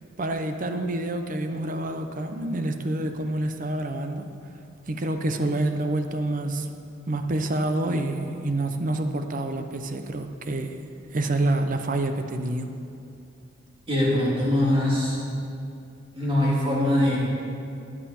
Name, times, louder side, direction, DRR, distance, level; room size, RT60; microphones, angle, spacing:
voice 1, 0.2-4.2 4.9-6.7 7.1-10.7 11.1-12.7, right 2 dB, 45° right, 7 dB, 0.8 m, -27 dB
voice 2, 13.9-15.2 16.1-17.2, left 1 dB, 30° right, -6 dB, 3.0 m, -22 dB
14.5 x 9.4 x 4.4 m, 2.5 s
head